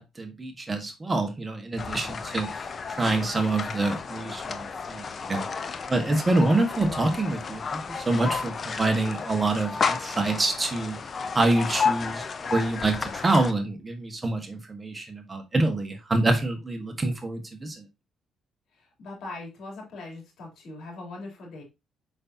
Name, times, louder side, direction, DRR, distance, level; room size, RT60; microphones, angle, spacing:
voice 1, 0.0-2.5 3.0-5.4 5.9-11.0 11.3-17.8, right 2 dB, 25° right, 5 dB, 1.6 m, -26 dB
sound 1, 1.8-13.5, left 5 dB, 45° left, 0.7 m, -32 dB
voice 2, 18.7-21.6, left 2 dB, 70° left, 0 dB, 3.7 m, -41 dB
6.5 x 5.8 x 2.9 m, 0.24 s
cardioid pair, 90°, 0 cm